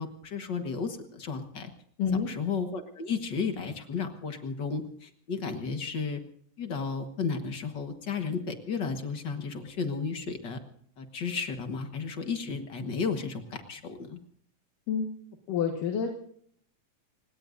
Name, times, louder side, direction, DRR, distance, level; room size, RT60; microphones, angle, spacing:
voice 1, 0.0-1.7 2.3-6.2 6.6-10.6 11.0-14.2, left 5 dB, 50° left, 7 dB, 1.4 m, -33 dB
voice 2, 2.0-2.3 14.9-15.1 15.5-16.1, left 6 dB, 80° left, 3 dB, 3.1 m, -28 dB
29.5 x 17.5 x 2.6 m, 0.64 s
omnidirectional pair, 3.7 m